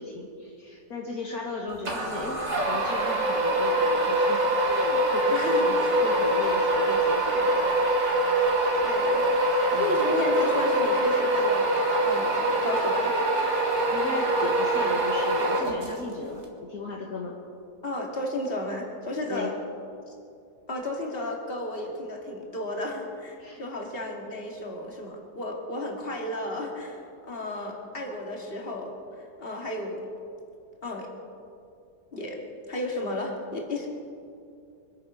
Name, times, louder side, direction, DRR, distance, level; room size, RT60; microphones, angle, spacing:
voice 1, 0.0-2.4 2.7-7.7 9.7-10.1 13.5-17.4 19.3-19.5 23.4-23.6, left 3 dB, 60° left, -1 dB, 2.0 m, -36 dB
sound 1, 1.8-16.1, right 1 dB, 40° right, 2.2 m, -24 dB
voice 2, 5.3-5.9 8.8-9.2 9.7-11.7 12.0-13.2 17.8-19.5 20.1-20.2 20.7-28.9 29.4-30.0 30.8-31.1 32.1-32.4 32.7-33.9, left 1 dB, 35° left, 0 dB, 2.4 m, -33 dB
24.5 x 9.4 x 6.2 m, 2.5 s
omnidirectional pair, 1.8 m